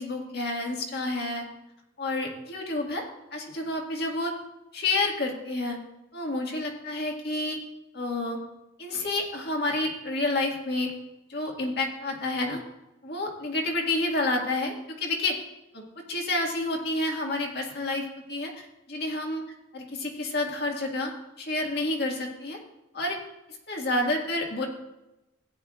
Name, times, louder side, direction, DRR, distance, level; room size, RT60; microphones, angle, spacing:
voice 1, 0.0-1.4 2.0-3.0 3.3-4.3 4.7-5.8 6.1-7.6 7.9-8.4 8.8-10.9 11.3-12.6 13.0-15.4 15.7-19.4 19.7-21.1 21.4-22.6 22.9-23.2 23.7-24.7, left 2 dB, 50° left, 0 dB, 2.0 m, -29 dB
16.5 x 10.0 x 2.5 m, 0.95 s
head